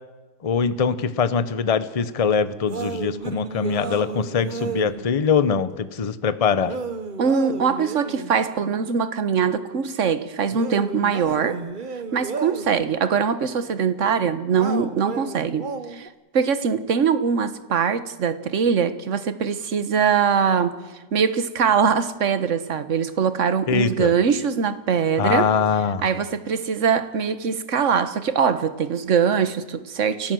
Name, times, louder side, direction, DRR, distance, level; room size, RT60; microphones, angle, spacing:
voice 1, 0.4-6.7 23.7-24.1 25.2-26.0, left 6 dB, 30° left, 0.7 m, -22 dB
sound 1, 2.7-5.0 6.7-8.3 10.5-12.8 14.5-16.1, right 4 dB, 35° right, 1.0 m, -32 dB
voice 2, 7.2-11.6 12.1-16.1 16.3-20.8 21.1-25.5 26.0-30.3, right 6 dB, 50° right, 1.4 m, -22 dB
30.0 x 14.5 x 7.7 m
omnidirectional pair, 1.8 m